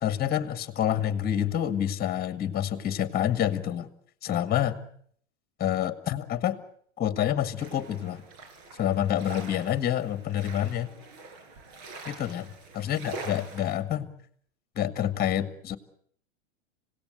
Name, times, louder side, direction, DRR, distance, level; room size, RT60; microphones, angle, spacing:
voice 1, 0.0-3.9 4.2-4.8 5.6-6.6 7.0-8.3 8.8-10.9 12.1-14.1 14.8-15.8, left 10 dB, 25° left, 11 dB, 1.9 m, -28 dB
sound 1, 7.6-13.8, right 3 dB, 50° right, 5.1 m, -44 dB
26.5 x 18.0 x 8.1 m, 0.63 s
hypercardioid pair, 120°, 35 cm